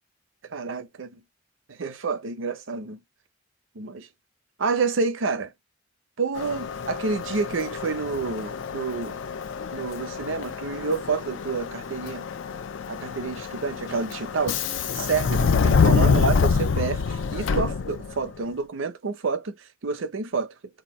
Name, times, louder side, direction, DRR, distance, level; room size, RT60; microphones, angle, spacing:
voice 1, 0.4-1.2 1.7-3.0 3.7-4.1 4.6-5.5 6.2-9.2 9.7-12.2 12.9-14.6 14.9-20.5, right 4 dB, 75° right, 0.6 m, -29 dB
Subway metro underground, 6.4-18.3, left 5 dB, 70° left, 0.4 m, -26 dB
2.8 x 2.5 x 4.1 m
head